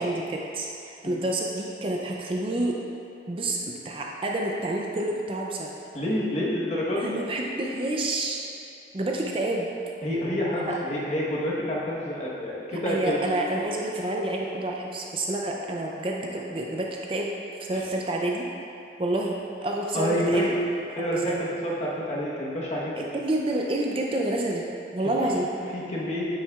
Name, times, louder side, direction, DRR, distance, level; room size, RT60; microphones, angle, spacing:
voice 1, 0.0-2.8 3.3-5.7 7.0-8.4 8.9-9.7 10.7-10.8 12.8-17.3 17.6-18.5 19.0-20.5 21.3-21.5 23.1-24.6 24.9-25.5, right 1 dB, 30° right, -1 dB, 0.4 m, -28 dB
voice 2, 5.9-7.1 10.0-13.2 17.7-17.8 19.9-20.6 21.0-23.1 25.2-25.3 25.7-26.3, equal, 35° left, -6 dB, 1.2 m, -28 dB
8.7 x 7.3 x 2.4 m, 2.7 s
head